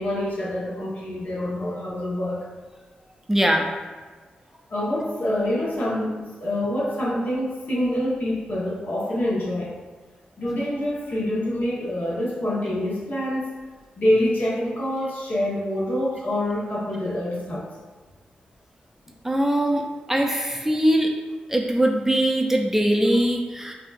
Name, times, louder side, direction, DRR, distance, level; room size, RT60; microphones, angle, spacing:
voice 1, 0.0-2.5 4.7-9.7 10.4-13.5 14.0-17.7, left 1 dB, 60° left, -6 dB, 1.3 m, -26 dB
voice 2, 3.3-3.7 19.2-19.8 20.1-21.1 21.5-23.7, right 1 dB, 10° right, 2 dB, 0.4 m, -21 dB
5.0 x 2.7 x 2.5 m, 1.4 s
cardioid pair, 60°, 3 cm